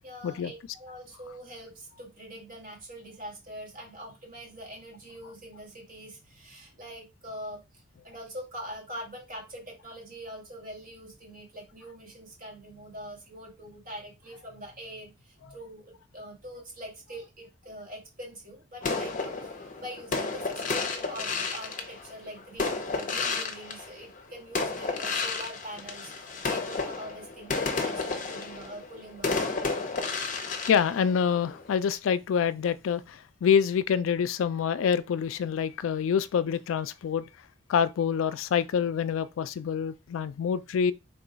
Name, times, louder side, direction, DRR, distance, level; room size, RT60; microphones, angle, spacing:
voice 1, 0.0-29.6, equal, 45° right, 1.8 m, -44 dB
sound 1, 18.8-24.2 24.5-31.7, left 4 dB, 40° left, 0.6 m, -32 dB
voice 2, 30.3-37.2 37.7-40.9, left 7 dB, 80° left, 0.3 m, -26 dB
3.7 x 2.3 x 3.9 m
head